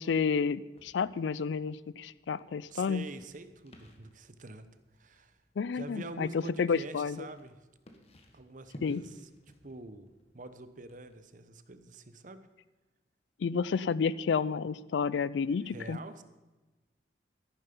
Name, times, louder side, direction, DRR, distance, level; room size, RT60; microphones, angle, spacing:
voice 1, 0.0-3.0 5.6-7.3 8.8-9.0 13.4-16.0, left 5 dB, 90° left, 19 dB, 0.4 m, -30 dB
sound 1, 0.7-11.3, equal, 35° left, 1.5 m, -58 dB
voice 2, 2.7-4.7 4.9-5.4 5.7-7.7 8.3-9.3 9.6-10.1 10.3-12.5 15.6-16.2, right 2 dB, 45° right, 11 dB, 0.9 m, -46 dB
13.0 x 11.5 x 5.4 m, 1.1 s
head